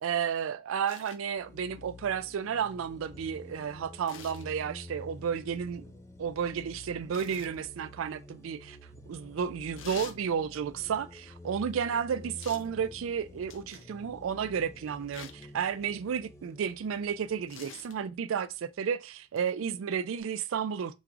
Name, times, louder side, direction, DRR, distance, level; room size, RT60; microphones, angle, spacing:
voice 1, 0.0-5.9 6.2-8.8 9.1-20.9, right 7 dB, 85° right, 0.4 m, -32 dB
sound 1, 0.9-1.2 4.1-4.5 7.1-7.6 9.8-10.2 12.4-12.7 13.5-13.9 15.1-15.5 17.5-18.0 19.4-19.5, left 7 dB, 70° left, 0.6 m, -46 dB
sound 2, 1.4-18.8, left 2 dB, 15° left, 0.4 m, -50 dB
3.9 x 2.5 x 4.6 m
head